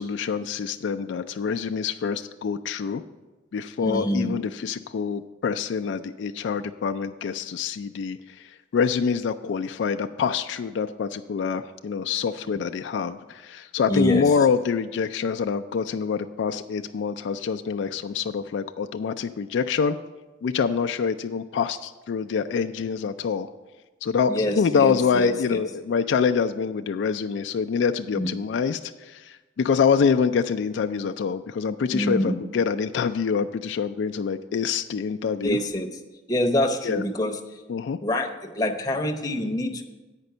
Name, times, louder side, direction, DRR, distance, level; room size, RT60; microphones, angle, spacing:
voice 1, 0.0-3.0 3.5-8.2 8.7-20.0 20.4-23.5 24.0-35.6 36.8-37.0 37.7-38.0, left 6 dB, 70° left, 8 dB, 0.3 m, -25 dB
voice 2, 3.8-4.3 13.9-14.3 24.3-25.6 28.1-28.3 31.9-32.4 35.4-35.9 36.3-37.4 38.0-39.8, left 1 dB, 20° left, 4 dB, 0.7 m, -25 dB
9.0 x 5.2 x 6.7 m, 1.2 s
head